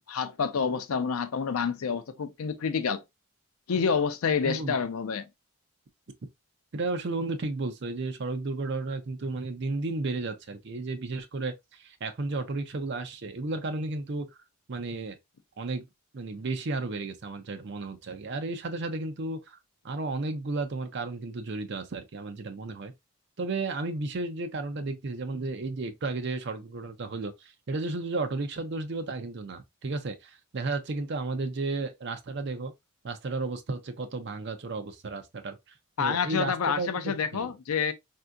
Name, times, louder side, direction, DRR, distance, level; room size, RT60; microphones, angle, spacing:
voice 1, 0.0-3.0 3.7-5.3 36.0-37.9, left 6 dB, 75° left, 0.5 m, -28 dB
voice 2, 4.4-4.8 6.7-14.3 14.7-15.2 15.6-15.9 16.1-19.6 19.8-22.9 23.4-32.7 33.0-35.6 36.0-37.5, right 3 dB, 50° right, 0.5 m, -33 dB
3.5 x 2.7 x 2.2 m
head